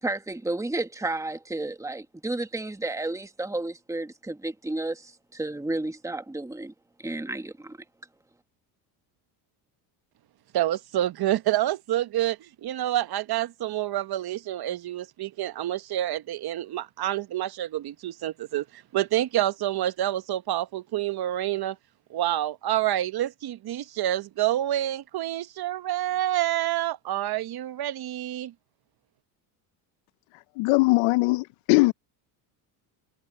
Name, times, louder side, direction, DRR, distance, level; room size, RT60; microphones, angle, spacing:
voice 1, 0.0-6.7 7.0-7.8, right 2 dB, 5° right, 1.8 m, -32 dB
voice 2, 10.5-21.8 22.1-28.5, right 13 dB, 50° right, 1.2 m, -28 dB
voice 3, 30.6-31.9, left 24 dB, 80° left, 0.8 m, -21 dB
supercardioid pair, 85°, 48 cm